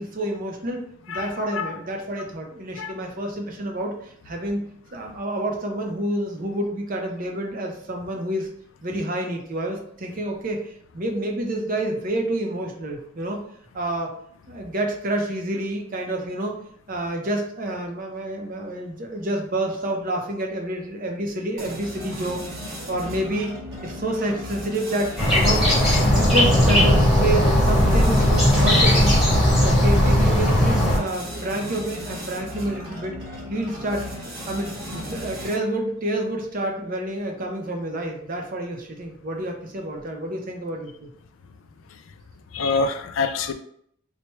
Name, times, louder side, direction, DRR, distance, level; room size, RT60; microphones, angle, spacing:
voice 1, 0.0-4.6 4.9-8.5 8.8-13.4 13.7-14.1 14.5-16.6 16.9-23.5 23.8-25.7 26.0-29.2 29.6-33.2 33.5-34.1 34.5-41.1, right 1 dB, 40° right, 2 dB, 0.6 m, -28 dB
voice 2, 1.1-1.7 2.8-2.9 42.5-43.5, left 4 dB, 70° left, 7 dB, 0.4 m, -26 dB
sound 1, 21.6-35.8, left 1 dB, 60° right, 1.0 m, -36 dB
sound 2, 25.2-31.0, left 1 dB, ahead, 1.0 m, -17 dB
4.5 x 2.1 x 3.0 m, 0.67 s
head